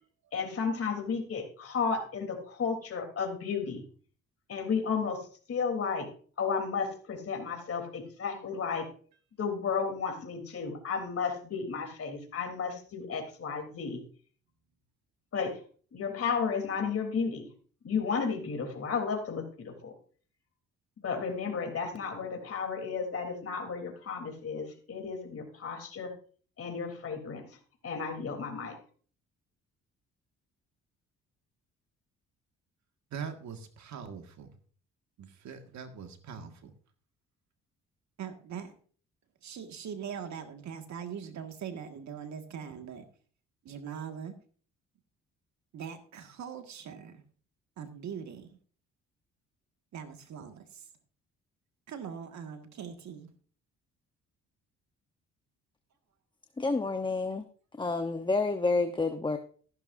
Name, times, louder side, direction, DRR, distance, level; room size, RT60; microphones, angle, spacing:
voice 1, 0.3-3.8 4.5-6.1 6.4-8.9 9.4-14.0 15.3-15.6 15.9-17.5 17.8-19.9 21.0-26.1 26.6-27.5 27.8-28.8, left 5 dB, 50° left, 3.4 m, -33 dB
voice 2, 33.1-34.6 35.2-36.7 38.2-38.7 39.4-43.1 43.6-44.4 45.7-47.2 47.8-48.6 49.9-50.9 51.9-53.3, right 7 dB, 65° right, 1.8 m, -42 dB
voice 3, 56.6-57.4 57.8-59.4, left 3 dB, 15° left, 0.9 m, -29 dB
14.5 x 11.5 x 2.6 m
cardioid pair, 90°, 30 cm